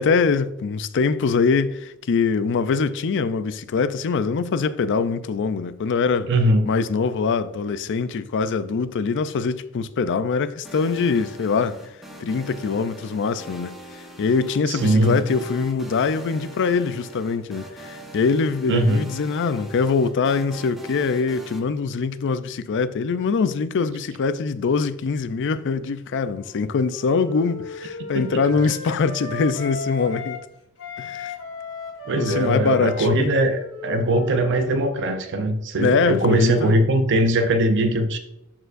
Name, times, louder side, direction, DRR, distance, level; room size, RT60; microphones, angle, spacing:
voice 1, 0.0-6.3 6.7-11.8 12.2-30.4 31.0-31.3 32.2-33.3 35.8-36.7, left 5 dB, 55° left, 0.4 m, -23 dB
voice 2, 6.3-6.7 14.7-15.2 18.7-19.1 28.1-28.3 32.1-38.2, right 1 dB, 55° right, 0.5 m, -20 dB
sound 1, 10.6-21.6, equal, ahead, 1.0 m, -42 dB
Wind instrument woodwind instrument, 26.1-30.5 30.8-35.3, left 3 dB, 80° left, 2.2 m, -36 dB
13.0 x 4.5 x 2.5 m
head